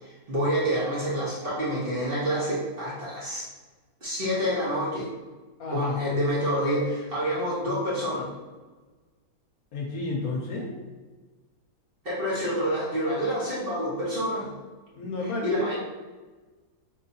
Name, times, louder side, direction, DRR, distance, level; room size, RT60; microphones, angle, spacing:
voice 1, 0.0-3.5 4.0-5.1 5.7-8.3 12.0-14.5 15.2-15.8, equal, 40° right, -7 dB, 1.2 m, -28 dB
voice 2, 5.6-6.0 9.7-10.7 14.9-15.8, left 3 dB, 65° left, 0 dB, 1.1 m, -30 dB
4.4 x 3.7 x 2.7 m, 1.3 s
omnidirectional pair, 1.7 m